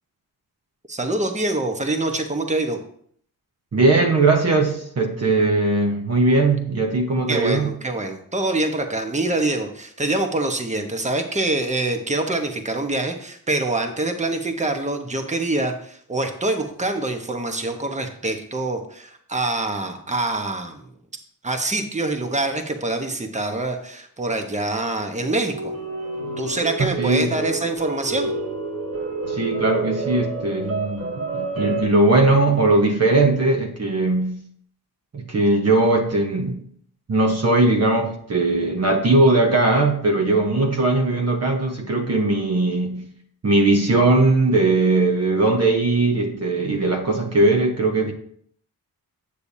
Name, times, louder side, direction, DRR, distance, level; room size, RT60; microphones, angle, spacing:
voice 1, 0.9-2.8 7.3-20.9 21.4-25.7 26.4-28.3, right 2 dB, 20° right, 5 dB, 1.1 m, -25 dB
voice 2, 3.7-7.7 26.8-27.3 29.3-34.4 35.1-36.6 37.1-43.1 43.4-48.1, right 2 dB, 45° right, 2 dB, 1.2 m, -19 dB
sound 1, 25.2-31.8, right 3 dB, 65° right, 2.3 m, -29 dB
8.5 x 6.7 x 2.7 m, 0.62 s
cardioid pair, 65°, 37 cm